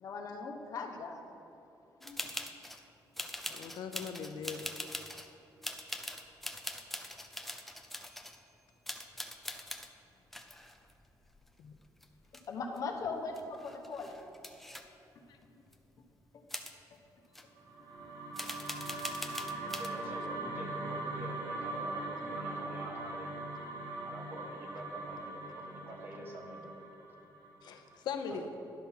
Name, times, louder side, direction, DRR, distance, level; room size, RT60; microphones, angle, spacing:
voice 1, 0.0-1.2 2.0-2.2 12.5-14.2, left 4 dB, 50° left, 1 dB, 1.1 m, -39 dB
sound 1, 2.0-2.8 3.1-5.3 5.6-8.4 8.9-9.9 10.3-11.8 12.0-12.8 13.1-13.2 13.3-14.8 15.7-15.8 16.5-16.7 17.3-17.4 18.3-19.9, left 1 dB, ahead, 0.5 m, -42 dB
voice 2, 3.5-4.7 11.6-11.7 20.0-20.1 27.6-28.5, left 6 dB, 80° left, 6 dB, 0.8 m, -40 dB
sound 2, 17.6-27.9, right 2 dB, 65° right, 1.9 m, -41 dB
voice 3, 19.6-23.3 24.0-26.9 28.3-28.4, right 1 dB, 30° right, 1 dB, 1.2 m, -47 dB
11.5 x 6.0 x 5.7 m, 2.9 s
cardioid pair, 175°, 7 cm